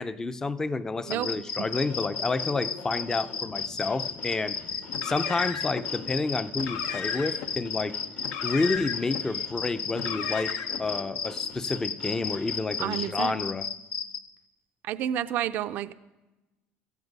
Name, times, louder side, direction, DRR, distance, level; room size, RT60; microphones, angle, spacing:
voice 1, 0.0-4.6 5.0-8.0 8.4-13.7, left 3 dB, 15° left, 0.5 m, -30 dB
sound 1, 1.1-14.2, left 5 dB, 50° left, 1.3 m, -33 dB
sound 2, 1.7-13.1, left 4 dB, 65° left, 2.0 m, -46 dB
Car, 4.9-5.8 6.5-7.5 8.2-9.2 9.9-10.9, left 8 dB, 85° left, 1.2 m, -35 dB
voice 2, 12.8-13.4 14.8-15.9, right 11 dB, 55° right, 0.5 m, -30 dB
18.0 x 14.5 x 5.4 m
cardioid pair, 150°, 4 cm